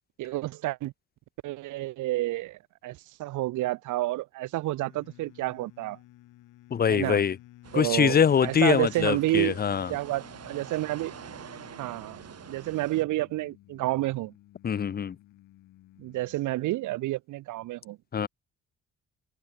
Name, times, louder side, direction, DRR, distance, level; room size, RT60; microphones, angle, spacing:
voice 1, 0.2-0.9 1.4-6.0 6.9-7.2 7.7-9.6 9.9-11.1 11.8-12.2 12.5-14.3 16.0-18.0, right 17 dB, 80° right, 0.6 m, -30 dB
sound 1, 4.8-16.7, left 16 dB, 90° left, 6.7 m, -54 dB
voice 2, 6.7-7.4 7.7-9.9 14.6-15.2 18.1-18.3, left 7 dB, 30° left, 0.6 m, -23 dB
sound 2, 7.6-13.0, right 8 dB, 55° right, 4.1 m, -46 dB
cardioid pair, 90°, 30 cm